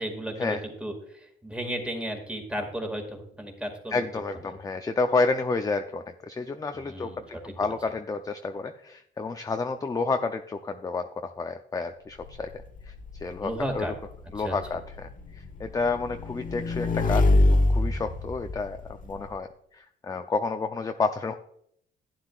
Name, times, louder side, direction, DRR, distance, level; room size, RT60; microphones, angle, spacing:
voice 1, 0.0-4.1 6.7-7.7 13.4-13.9 14.4-14.6, right 1 dB, 5° right, 3 dB, 2.0 m, -34 dB
voice 2, 3.9-12.5 12.9-13.9 14.3-17.3 17.5-21.3, left 4 dB, 20° left, 6 dB, 0.5 m, -30 dB
Motorcycle / Engine, 12.2-19.3, left 2 dB, 45° left, 1.1 m, -26 dB
11.5 x 9.4 x 2.4 m, 0.70 s
cardioid pair, 90°, 20 cm